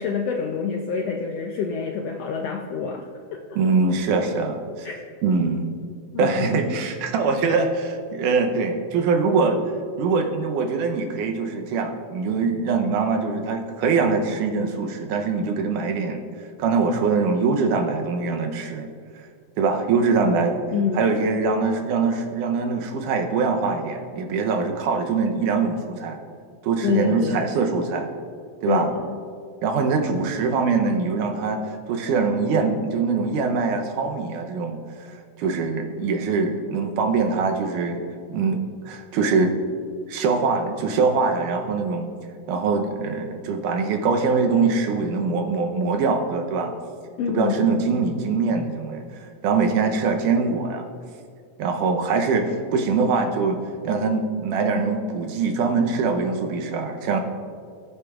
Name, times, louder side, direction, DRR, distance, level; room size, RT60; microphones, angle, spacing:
voice 1, 0.0-3.4 4.8-5.0 6.1-6.8 20.7-21.2 26.8-27.6 28.7-29.2 47.2-47.9, left 6 dB, 80° left, 2 dB, 1.4 m, -27 dB
voice 2, 3.6-4.9 5.2-5.7 6.2-9.6 10.0-16.2 16.6-18.9 19.6-20.6 20.9-26.2 26.6-28.1 28.6-28.9 29.6-31.6 31.9-34.8 35.1-39.6 40.1-42.1 42.5-46.7 47.3-50.9 51.6-53.6 53.8-57.2, right 4 dB, 90° right, 4 dB, 2.4 m, -23 dB
19.5 x 8.3 x 2.5 m, 2.3 s
omnidirectional pair, 3.5 m